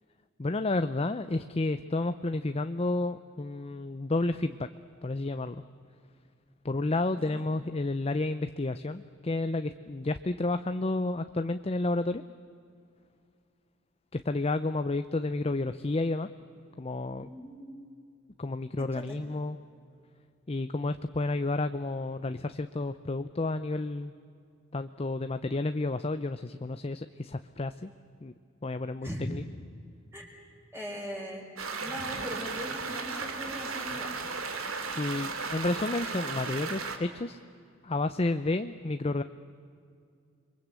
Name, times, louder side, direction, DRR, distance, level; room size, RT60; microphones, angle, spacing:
voice 1, 0.4-4.7 5.0-5.6 6.6-12.2 14.1-16.3 16.8-17.3 18.4-19.6 20.5-24.1 24.7-27.9 28.2-28.3 28.6-29.1 35.0-37.4 37.8-39.2, left 2 dB, 30° left, 10 dB, 0.6 m, -31 dB
voice 2, 7.1-7.5 17.2-17.8 18.8-19.2 29.0-29.2 30.1-30.3 30.7-31.4 31.8-34.2, equal, 10° right, -2 dB, 5.3 m, -40 dB
sound 1, 31.6-37.0, right 4 dB, 85° right, 3.0 m, -35 dB
29.5 x 23.0 x 8.3 m, 2.3 s
head